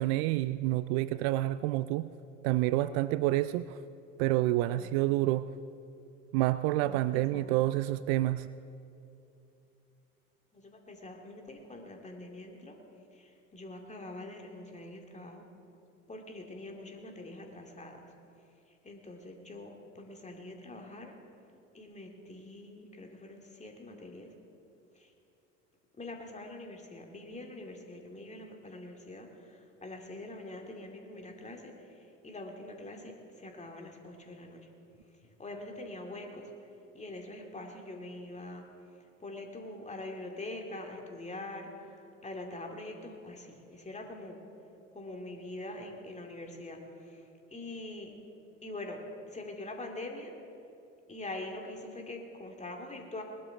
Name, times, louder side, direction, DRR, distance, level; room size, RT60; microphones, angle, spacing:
voice 1, 0.0-2.1 2.4-3.8 4.2-5.5 6.3-8.5, right 16 dB, 55° right, 15 dB, 0.4 m, -28 dB
voice 2, 6.8-7.6 10.5-12.8 13.1-15.4 16.1-18.1 18.8-21.1 21.7-24.3 25.0-25.1 26.0-31.7 32.2-33.1 33.4-34.7 35.4-36.5 36.9-38.7 39.2-42.0 42.2-44.4 44.9-47.2 47.5-48.1 48.6-49.0 49.3-50.3 51.1-53.2, left 2 dB, 20° left, 2 dB, 2.3 m, -44 dB
20.0 x 12.5 x 3.9 m, 2.7 s
figure-of-eight pair, 70°, 39 cm